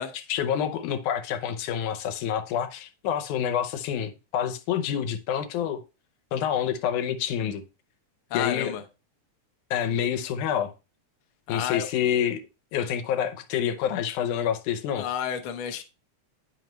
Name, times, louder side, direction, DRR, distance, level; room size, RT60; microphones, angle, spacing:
voice 1, 0.1-5.8 6.3-7.6 8.3-8.8 9.7-10.7 11.5-12.4 12.7-15.1, left 9 dB, 85° left, 2.3 m, -27 dB
voice 2, 8.3-8.8 11.5-11.9 15.0-15.8, left 9 dB, 70° left, 1.2 m, -31 dB
9.2 x 5.7 x 3.1 m
omnidirectional pair, 3.5 m